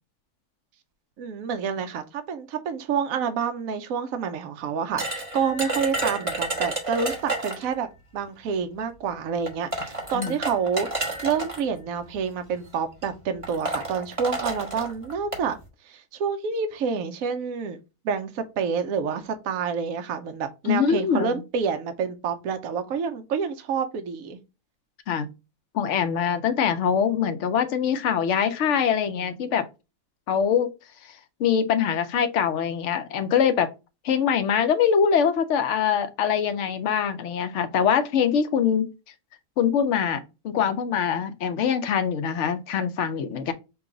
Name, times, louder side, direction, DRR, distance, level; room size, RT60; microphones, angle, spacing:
voice 1, 1.2-7.9 8.1-10.9 11.2-15.6 15.8-17.8 18.0-24.4, right 6 dB, 65° right, 1.0 m, -28 dB
sound 1, 5.0-7.7 8.8-8.9 9.5-11.6 12.5-12.7 13.0-13.1 13.4-15.5, right 2 dB, 25° right, 1.2 m, -30 dB
voice 2, 20.6-21.4 25.1-25.3 25.7-29.7 30.3-30.7 31.0-33.7 34.0-38.9 39.6-43.5, left 7 dB, 65° left, 0.8 m, -23 dB
5.7 x 2.3 x 3.7 m
omnidirectional pair, 1.7 m